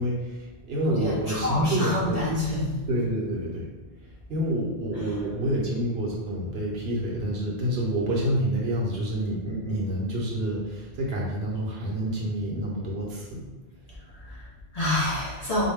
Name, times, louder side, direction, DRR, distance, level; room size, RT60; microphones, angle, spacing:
voice 1, 0.0-2.2 2.9-3.7 4.3-13.4, equal, 65° right, -3 dB, 1.0 m, -28 dB
voice 2, 0.8-2.7 4.9-5.2 14.1-15.7, left 1 dB, 40° left, -6 dB, 0.8 m, -28 dB
4.0 x 2.2 x 3.4 m, 1.1 s
omnidirectional pair, 1.2 m